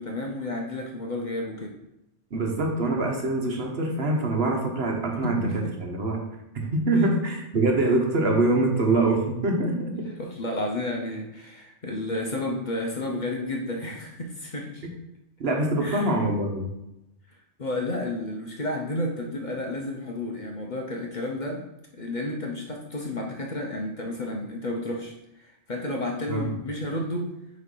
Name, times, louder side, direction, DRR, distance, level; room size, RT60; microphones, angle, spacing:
voice 1, 0.0-1.8 5.4-5.7 10.2-14.9 15.8-16.1 17.6-21.7 21.9-27.3, left 1 dB, 45° left, 0 dB, 0.8 m, -31 dB
voice 2, 2.3-6.2 6.5-10.1 15.4-16.7 26.3-26.5, right 2 dB, 55° right, 1 dB, 1.2 m, -24 dB
6.2 x 3.2 x 5.4 m, 0.88 s
omnidirectional pair, 1.3 m